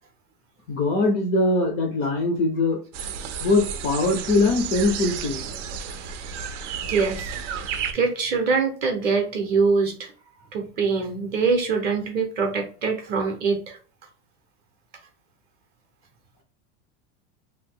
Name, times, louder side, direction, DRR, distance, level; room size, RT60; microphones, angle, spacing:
voice 1, 0.7-2.8 3.4-5.4, left 2 dB, 30° left, 3 dB, 0.3 m, -22 dB
sound 1, 2.9-7.9, right 7 dB, 75° right, 0.6 m, -32 dB
voice 2, 6.9-7.3 7.9-10.1 10.5-13.8, right 4 dB, 25° right, 4 dB, 0.6 m, -23 dB
2.7 x 2.2 x 3.5 m, 0.40 s
supercardioid pair, 165°, 36 cm